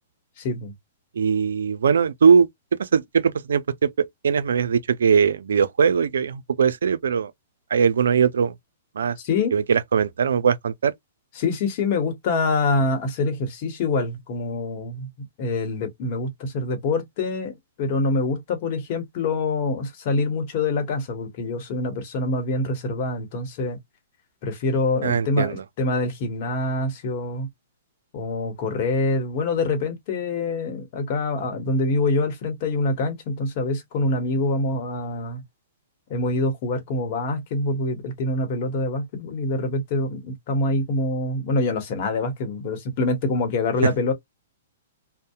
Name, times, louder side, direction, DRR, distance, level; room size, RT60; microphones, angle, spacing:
voice 1, 0.4-0.7 9.2-9.5 11.4-23.8 24.4-27.5 28.1-35.4 36.1-44.1, left 2 dB, 45° left, 1.0 m, -25 dB
voice 2, 1.2-2.5 2.8-7.3 7.7-8.5 9.0-9.2 9.5-10.9 25.0-25.6, right 6 dB, 80° right, 0.4 m, -20 dB
2.7 x 2.1 x 2.3 m
hypercardioid pair, 130°, 0 cm